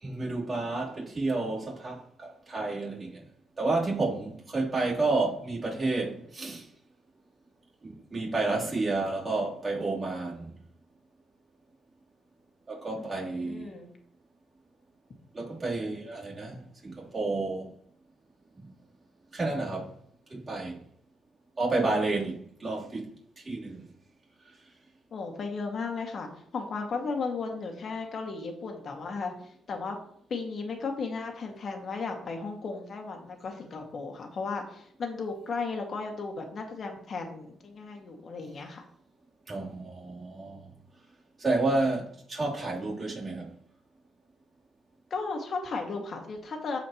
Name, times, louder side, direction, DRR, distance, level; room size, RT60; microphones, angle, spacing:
voice 1, 0.0-3.2 3.6-6.7 7.8-10.5 12.7-13.7 15.3-17.8 18.6-18.7 19.3-19.9 20.3-20.8 21.6-23.1 23.4-23.9 39.5-40.7 41.4-43.6, right 2 dB, 30° right, 3.4 m, -30 dB
voice 2, 13.0-13.9 25.1-29.3 29.7-30.0 30.3-38.9 45.1-46.8, left 4 dB, 50° left, 2.0 m, -35 dB
15.0 x 5.0 x 3.0 m
cardioid pair, 90°, 0 cm